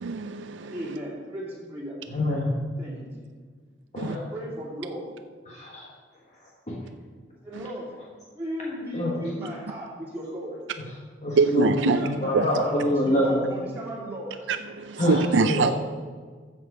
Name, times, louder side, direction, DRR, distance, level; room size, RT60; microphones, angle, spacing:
voice 1, 0.0-0.9 4.0-4.2 7.5-7.6 11.4-12.1 12.3-12.5 14.5-15.7, right 4 dB, 90° right, 9 dB, 0.4 m, -24 dB
voice 2, 0.7-2.0 2.8-3.1 4.0-5.0 7.4-7.9 8.3-10.6 11.8-14.3 15.5-15.7, right 1 dB, 10° right, -8 dB, 2.9 m, -36 dB
voice 3, 2.1-2.5 3.9-4.1 5.5-5.9 6.7-6.8 8.9-9.2 11.2-13.4 15.0-15.7, left 1 dB, 40° left, -4 dB, 1.4 m, -25 dB
13.5 x 7.2 x 4.9 m, 1.5 s
head